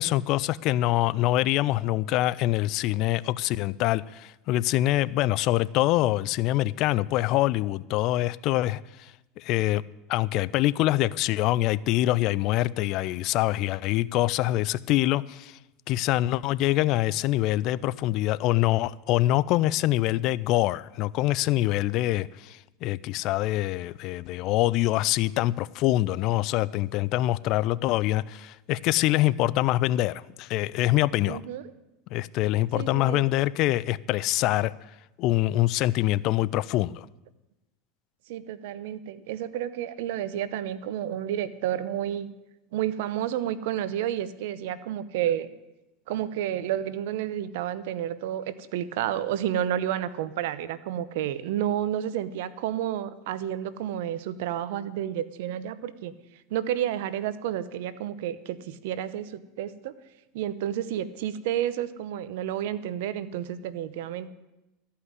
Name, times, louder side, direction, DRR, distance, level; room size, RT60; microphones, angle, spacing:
voice 1, 0.0-9.1 9.4-9.8 10.1-15.6 15.9-31.4 32.1-34.7 35.2-37.1, left 16 dB, 55° left, 19 dB, 0.4 m, -25 dB
voice 2, 31.3-31.6 32.7-33.2 38.3-42.3 42.7-45.5 46.1-56.1 56.5-59.9 60.3-64.3, right 11 dB, 75° right, 15 dB, 0.8 m, -30 dB
13.5 x 5.7 x 9.6 m, 0.96 s
supercardioid pair, 115°, 0 cm